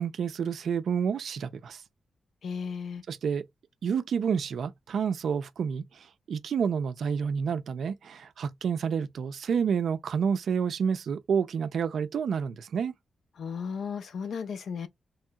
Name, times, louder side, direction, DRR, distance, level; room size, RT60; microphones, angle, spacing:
voice 1, 0.0-1.8 3.1-3.5 3.8-12.9, right 7 dB, 80° right, 0.4 m, -29 dB
voice 2, 2.4-3.0 13.4-14.9, left 6 dB, 80° left, 0.5 m, -35 dB
3.1 x 2.8 x 2.2 m
wide cardioid pair, 100°, 0 cm